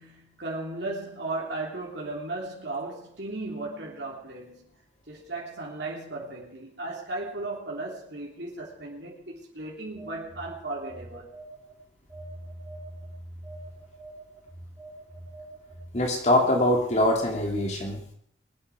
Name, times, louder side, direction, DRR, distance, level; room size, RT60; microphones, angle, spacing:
voice 1, 0.0-4.8 5.1-11.3, right 2 dB, 65° right, 3.3 m, -36 dB
Telephone, 9.9-11.7 12.1-16.2, right 1 dB, 15° right, 4.7 m, -44 dB
voice 2, 15.9-18.1, left 1 dB, 35° left, 2.5 m, -23 dB
22.0 x 8.7 x 6.3 m
head